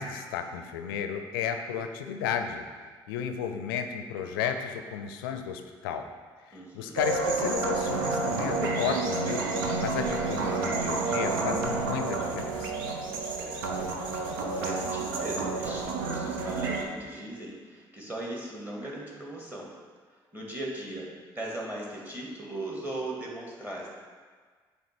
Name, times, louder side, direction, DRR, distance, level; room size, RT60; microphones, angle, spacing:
voice 1, 0.0-2.7 3.1-6.1 6.5-9.5 9.8-12.7, left 8 dB, 85° left, 7 dB, 0.4 m, -33 dB
voice 2, 6.5-7.0 13.2-19.7 20.3-23.9, right 1 dB, 15° right, -3 dB, 2.0 m, -39 dB
sound 1, 7.0-16.8, right 3 dB, 85° right, 0.6 m, -30 dB
7.9 x 2.9 x 6.0 m, 1.5 s
hypercardioid pair, 50°, 12 cm